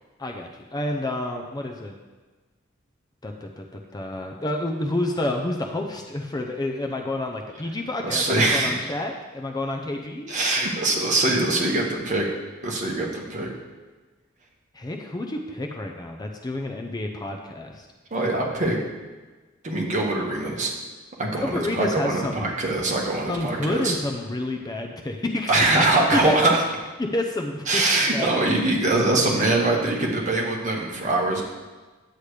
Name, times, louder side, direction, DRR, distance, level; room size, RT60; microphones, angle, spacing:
voice 1, 0.2-1.9 3.2-10.7 14.7-17.9 21.4-22.5 23.3-25.5 26.1-26.4 27.0-28.6, left 1 dB, 20° left, 3 dB, 0.5 m, -29 dB
voice 2, 8.0-8.8 10.3-12.3 12.6-13.5 18.1-18.8 19.6-20.7 21.2-24.0 25.5-26.6 27.7-31.4, right 2 dB, 35° right, -2 dB, 1.5 m, -23 dB
10.0 x 8.2 x 3.3 m, 1.3 s
head